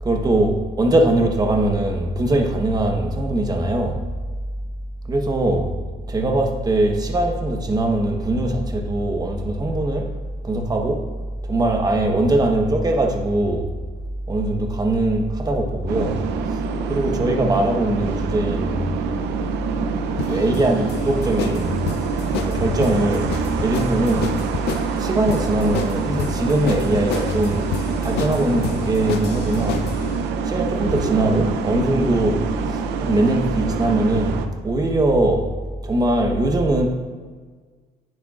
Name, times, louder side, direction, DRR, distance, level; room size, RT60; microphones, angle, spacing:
voice 1, 0.0-4.1 5.0-10.1 10.4-11.1 11.4-13.7 14.3-16.2 16.5-16.6 16.9-18.9 20.3-21.8 22.3-23.3 23.6-24.5 25.0-27.7 28.0-29.9 30.4-35.5 35.8-36.9, right 1 dB, 20° right, 1.1 m, -21 dB
sound 1, 15.9-34.5, right 6 dB, 85° right, 0.7 m, -26 dB
sound 2, 20.2-30.1, left 9 dB, 75° left, 0.5 m, -31 dB
10.5 x 9.0 x 2.5 m
cardioid pair, 110°, 17 cm